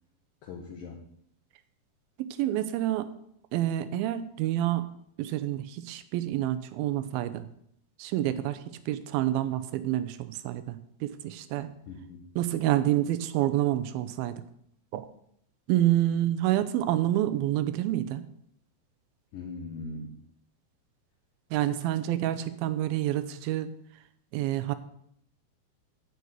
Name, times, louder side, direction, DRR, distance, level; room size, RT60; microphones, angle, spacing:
voice 1, 0.4-1.1 11.9-12.3 19.3-20.2, left 3 dB, 70° left, 0 dB, 2.5 m, -40 dB
voice 2, 2.2-3.1 3.5-4.9 5.2-7.5 8.0-11.7 12.4-14.4 14.9-15.1 15.7-18.2 21.5-23.7 24.3-24.7, right 13 dB, 80° right, 12 dB, 2.4 m, -28 dB
9.3 x 5.4 x 8.1 m, 0.72 s
omnidirectional pair, 4.6 m